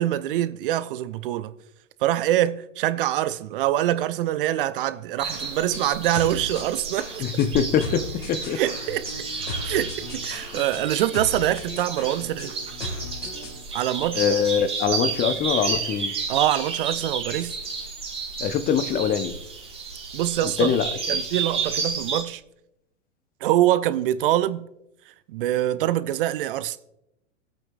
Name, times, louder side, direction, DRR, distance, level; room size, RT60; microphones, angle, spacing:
voice 1, 0.0-1.5 2.0-7.2 8.6-9.1 9.6-12.5 13.7-14.2 16.3-17.6 20.1-20.7 21.1-22.4 23.4-24.7 25.3-26.8, right 13 dB, 50° right, 0.6 m, -24 dB
sound 1, 5.2-22.2, right 5 dB, 15° right, 1.9 m, -31 dB
sound 2, 5.3-13.6, left 2 dB, 75° left, 3.2 m, -37 dB
voice 2, 7.2-8.6 14.1-16.1 18.4-19.4 20.6-20.9, left 8 dB, 25° left, 0.8 m, -23 dB
25.0 x 8.5 x 2.4 m
figure-of-eight pair, 100°, 36 cm